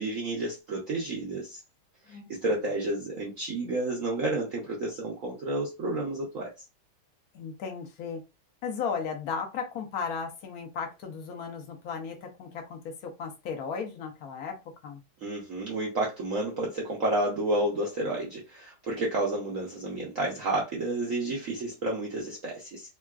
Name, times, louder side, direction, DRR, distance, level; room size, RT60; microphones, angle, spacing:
voice 1, 0.0-1.6 2.1-6.5 15.2-23.0, right 2 dB, 75° right, 0.7 m, -30 dB
voice 2, 7.3-8.2 8.6-14.6 14.8-15.0, left 6 dB, 85° left, 0.8 m, -35 dB
3.6 x 2.2 x 2.3 m
omnidirectional pair, 2.3 m